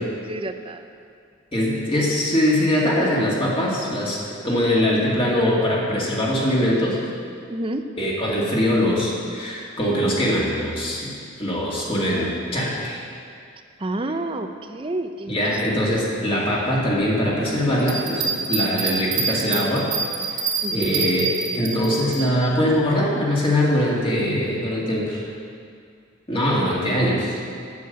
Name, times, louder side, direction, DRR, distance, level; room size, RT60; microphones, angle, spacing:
voice 1, 0.3-0.9 7.5-7.9 13.8-15.6 20.6-21.0, right 2 dB, 25° right, 7 dB, 0.6 m, -29 dB
voice 2, 1.5-7.0 8.0-13.0 15.3-19.9 20.3-20.4 20.7-25.3 26.3-27.4, equal, 30° left, -5 dB, 2.4 m, -22 dB
Bell, 17.8-22.2 22.7-22.8, right 5 dB, 90° right, 2.6 m, -26 dB
9.4 x 7.4 x 9.2 m, 2.3 s
head